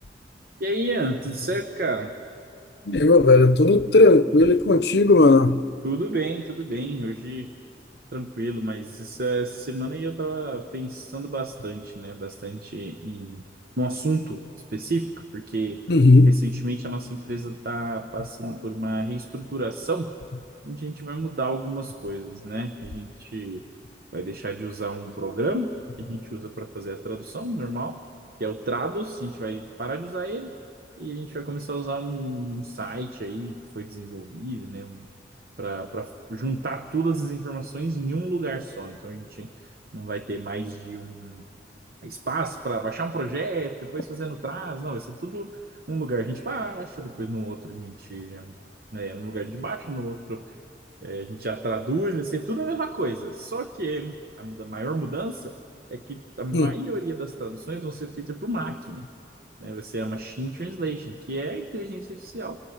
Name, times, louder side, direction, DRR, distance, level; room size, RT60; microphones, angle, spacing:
voice 1, 0.6-2.1 5.8-7.5 8.1-13.4 13.8-14.4 14.7-15.8 16.3-20.2 20.6-23.6 24.1-28.0 28.4-30.5 31.0-35.1 35.6-41.4 42.0-45.6 45.9-48.5 48.9-50.4 51.0-55.5 55.9-59.1 59.6-62.6, right 2 dB, 55° right, 0.9 m, -31 dB
voice 2, 2.8-5.6 15.9-16.4 56.5-56.7, left 2 dB, 65° left, 0.7 m, -16 dB
29.5 x 25.0 x 6.5 m
head